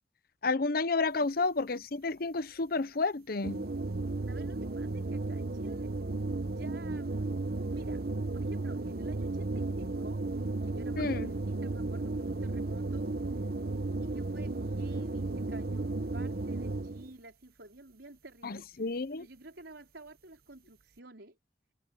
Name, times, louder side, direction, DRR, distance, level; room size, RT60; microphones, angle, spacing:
voice 1, 0.4-3.6 11.0-11.3 18.4-19.3, left 3 dB, 60° left, 0.8 m, -31 dB
voice 2, 1.0-1.5 4.2-5.9 6.4-7.3 7.7-8.0 8.3-10.3 10.6-13.5 14.0-21.4, right 2 dB, 85° right, 4.8 m, -51 dB
sound 1, 3.4-17.1, right 2 dB, 60° right, 1.0 m, -34 dB
head